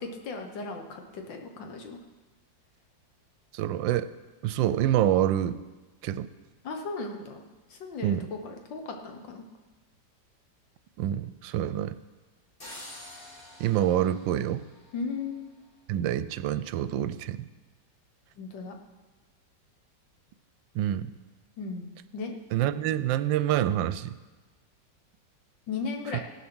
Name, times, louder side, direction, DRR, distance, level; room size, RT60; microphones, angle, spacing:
voice 1, 0.0-2.0 6.6-7.4 7.7-9.4 14.9-15.4 18.4-18.8 21.6-22.4 25.7-26.2, left 4 dB, 75° left, 4 dB, 1.9 m, -36 dB
voice 2, 3.5-4.1 4.4-5.6 6.0-6.3 8.0-8.3 11.0-12.0 13.6-14.6 15.9-17.5 20.7-21.1 22.5-24.1, right 11 dB, 85° right, 14 dB, 1.3 m, -26 dB
sound 1, 12.6-15.5, left 1 dB, 30° left, 2.0 m, -47 dB
16.5 x 7.1 x 6.2 m, 1.2 s
omnidirectional pair, 2.0 m